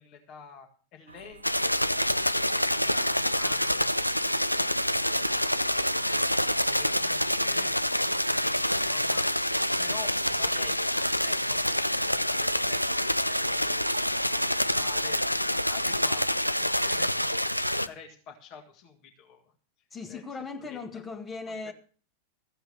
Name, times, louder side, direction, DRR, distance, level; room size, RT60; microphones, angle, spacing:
voice 1, 0.0-6.4 6.7-9.3 9.8-12.8 13.3-19.4 20.1-20.2 20.6-21.0 21.5-21.6, left 7 dB, 40° left, 1.9 m, -49 dB
sound 1, 1.1-16.0, right 4 dB, 75° right, 0.8 m, -49 dB
sound 2, 1.4-17.9, equal, 90° left, 0.5 m, -27 dB
voice 2, 7.5-7.9 19.9-21.7, left 4 dB, 20° left, 1.4 m, -39 dB
14.5 x 7.9 x 6.5 m
figure-of-eight pair, 90°, 0 cm